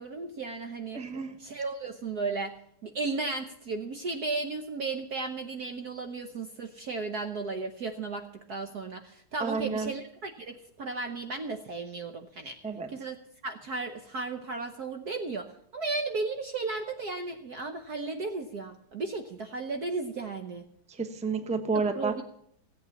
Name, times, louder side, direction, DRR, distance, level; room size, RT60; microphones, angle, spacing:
voice 1, 0.0-1.0 1.4-2.5 2.8-12.6 12.9-13.2 13.4-20.6 21.9-22.2, right 3 dB, 55° right, 6 dB, 1.3 m, -35 dB
voice 2, 0.9-1.4 9.4-9.9 12.6-12.9 20.9-22.1, right 4 dB, 5° right, 7 dB, 0.7 m, -30 dB
17.0 x 8.5 x 7.1 m, 0.70 s
omnidirectional pair, 2.4 m